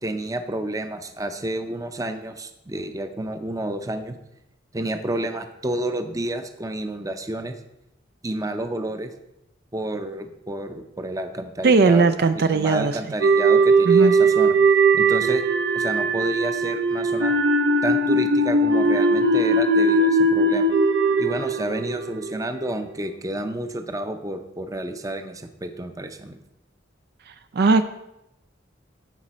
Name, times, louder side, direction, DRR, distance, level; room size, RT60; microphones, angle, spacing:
voice 1, 0.0-4.1 4.7-7.5 8.2-9.1 9.7-14.6 14.9-15.4 15.7-17.4 17.8-20.7 21.2-26.4, right 1 dB, 20° right, 7 dB, 0.7 m, -30 dB
voice 2, 11.6-13.0 13.8-14.1 27.5-27.9, right 4 dB, 55° right, 9 dB, 0.4 m, -18 dB
sound 1, 13.2-22.4, right 2 dB, 85° right, 1.0 m, -19 dB
15.0 x 5.1 x 4.2 m, 0.87 s
head